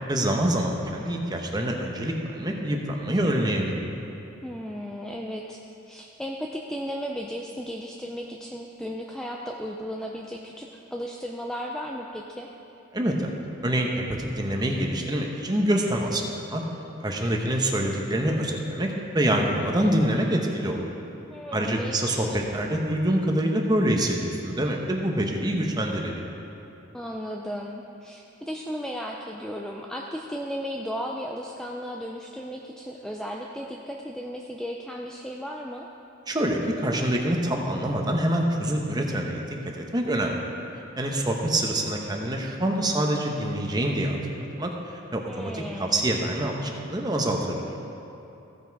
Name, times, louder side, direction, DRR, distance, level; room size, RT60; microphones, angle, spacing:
voice 1, 0.1-3.9 12.9-13.3 13.6-16.6 17.0-20.8 21.5-26.2 36.3-40.3 40.7-47.7, right 1 dB, 20° right, 1 dB, 0.9 m, -26 dB
voice 2, 4.4-5.6 5.9-12.5 21.3-22.4 26.9-35.9 45.3-46.1, equal, 5° left, 0 dB, 0.4 m, -35 dB
15.5 x 5.9 x 4.6 m, 2.8 s
head